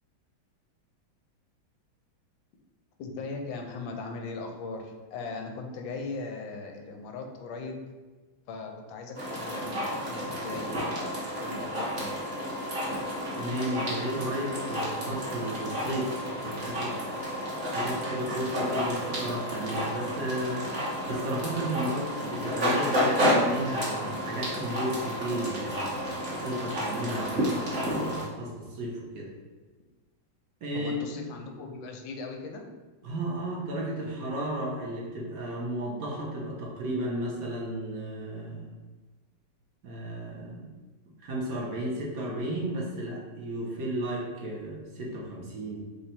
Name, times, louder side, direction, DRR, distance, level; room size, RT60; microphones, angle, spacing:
voice 1, 3.0-7.8 8.5-12.2 30.7-32.6, left 3 dB, 80° left, 3 dB, 1.4 m, -39 dB
sound 1, 9.1-28.2, equal, 35° right, 1.3 m, -31 dB
voice 2, 13.4-17.2 17.7-29.3 30.6-30.9 33.0-38.7 39.8-40.7 41.2-45.8, right 1 dB, 55° right, -3 dB, 1.2 m, -34 dB
5.2 x 2.3 x 4.3 m, 1.3 s
omnidirectional pair, 2.2 m